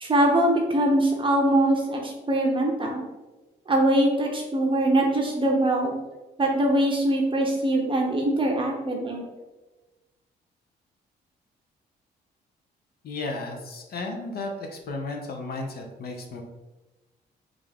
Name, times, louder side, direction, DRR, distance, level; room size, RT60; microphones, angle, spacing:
voice 1, 0.0-3.0 3.7-5.9 6.4-9.2, right 1 dB, 30° right, 0 dB, 0.6 m, -22 dB
voice 2, 13.0-16.4, left 3 dB, 60° left, 2 dB, 0.6 m, -34 dB
3.3 x 2.4 x 3.3 m, 1.1 s
cardioid pair, 85°, 18 cm